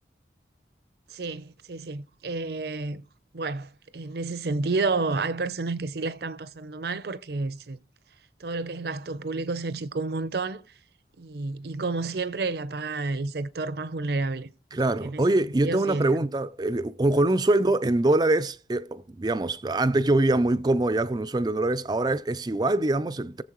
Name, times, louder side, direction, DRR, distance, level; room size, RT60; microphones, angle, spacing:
voice 1, 1.1-3.0 3.3-7.8 8.4-10.6 11.2-15.3 15.6-16.3 17.6-17.7, right 3 dB, 65° right, 0.6 m, -30 dB
voice 2, 14.7-23.4, right 2 dB, 25° right, 0.4 m, -24 dB
17.5 x 7.1 x 3.0 m
head